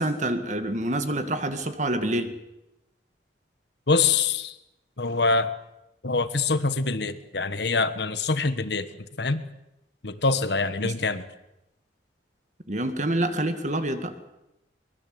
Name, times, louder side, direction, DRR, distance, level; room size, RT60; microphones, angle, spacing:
voice 1, 0.0-2.3 10.8-10.9 12.7-14.1, right 1 dB, 40° right, 8 dB, 2.0 m, -27 dB
voice 2, 3.9-4.6 5.0-5.5 6.0-8.9 9.2-9.4 10.0-11.2, left 4 dB, 65° left, 11 dB, 1.4 m, -24 dB
23.5 x 21.5 x 7.9 m, 0.90 s
head